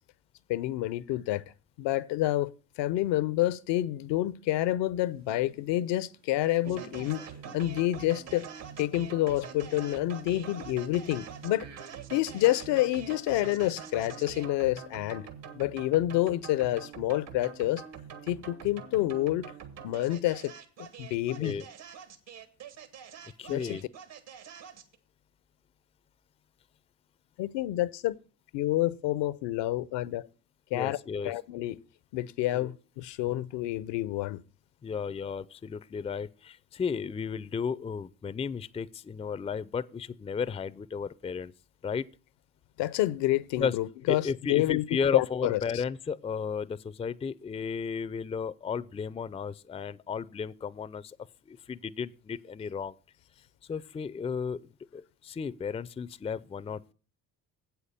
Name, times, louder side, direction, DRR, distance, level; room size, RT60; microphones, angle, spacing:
voice 1, 0.5-1.4 1.8-2.5 2.8-7.2 7.5-8.5 8.8-11.7 12.1-15.2 15.5-17.8 18.3-19.5 19.8-20.5 20.8-21.5 23.5-23.8 27.4-28.2 28.5-30.3 30.7-31.0 31.2-31.8 32.1-34.4 42.8-44.8 45.1-45.6, left 15 dB, 70° left, 0.6 m, -28 dB
sound 1, 5.0-11.7 12.0-13.9, right 6 dB, 85° right, 1.2 m, -55 dB
sound 2, 6.6-25.0, right 7 dB, 70° right, 1.5 m, -45 dB
voice 2, 23.4-23.8 30.7-31.3 32.5-32.7 34.8-41.5 41.8-42.1 43.6-43.7 44.1-51.2 51.5-52.9 53.7-54.6 54.9-56.9, left 6 dB, 15° left, 0.4 m, -34 dB
8.1 x 5.7 x 6.6 m
hypercardioid pair, 55°, 45 cm